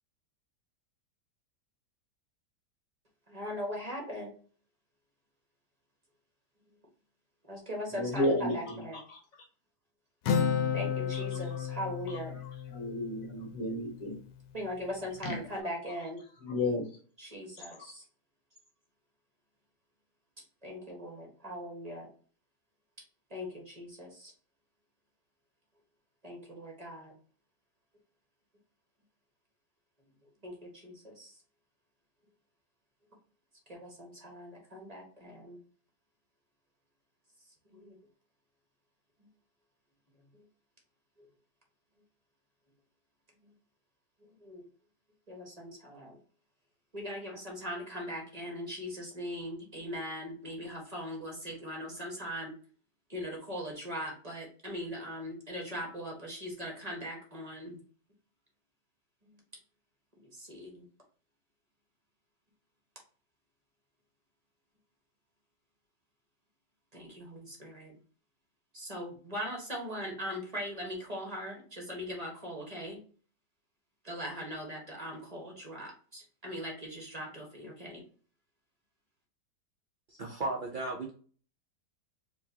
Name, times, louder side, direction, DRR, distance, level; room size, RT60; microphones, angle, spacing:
voice 1, 3.3-4.3 7.4-9.0 10.7-12.3 14.5-16.2 17.2-18.0 20.6-22.1 23.3-24.3 26.2-27.1 30.4-31.3 33.7-35.6 37.7-38.0 40.3-40.4 43.4-43.5 44.4-44.7 45.3-46.2 46.9-52.5 53.1-57.8 59.2-59.4 60.3-60.8 66.9-67.9 68.7-73.0 74.0-78.0, equal, 25° right, -1 dB, 1.3 m, -40 dB
voice 2, 7.9-8.8 9.1-9.2 11.1-11.2 11.5-11.6 12.7-14.2 15.2-15.3 16.4-16.9, left 1 dB, 55° left, 2 dB, 1.2 m, -32 dB
Acoustic guitar, 10.3-13.9, left 7 dB, 80° left, 1.2 m, -32 dB
voice 3, 80.2-81.1, right 2 dB, 90° right, 0 dB, 0.4 m, -34 dB
4.7 x 3.1 x 2.8 m, 0.41 s
omnidirectional pair, 1.9 m